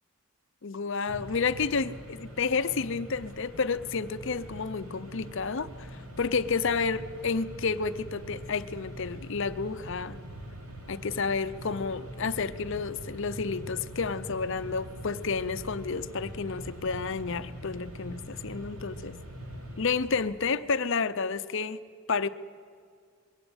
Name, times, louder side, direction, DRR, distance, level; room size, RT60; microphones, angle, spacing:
voice 1, 0.6-5.9 6.2-10.2 10.9-19.2 19.8-21.8 22.1-22.3, left 5 dB, 55° left, 12 dB, 0.6 m, -30 dB
Mechanisms, 1.1-20.5, equal, 75° right, 3.0 m, -43 dB
22.0 x 17.0 x 8.1 m, 2.1 s
head